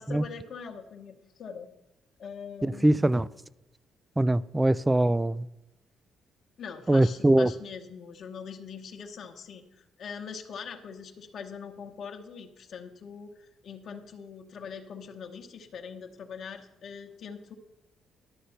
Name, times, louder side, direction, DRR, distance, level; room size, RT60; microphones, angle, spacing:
voice 1, 0.0-1.7 2.2-3.1 6.6-17.5, left 6 dB, 60° left, 1.0 m, -42 dB
voice 2, 2.6-3.3 4.2-5.5 6.9-7.5, right 1 dB, 15° right, 0.4 m, -22 dB
11.5 x 6.5 x 5.6 m
cardioid pair, 90°, 0 cm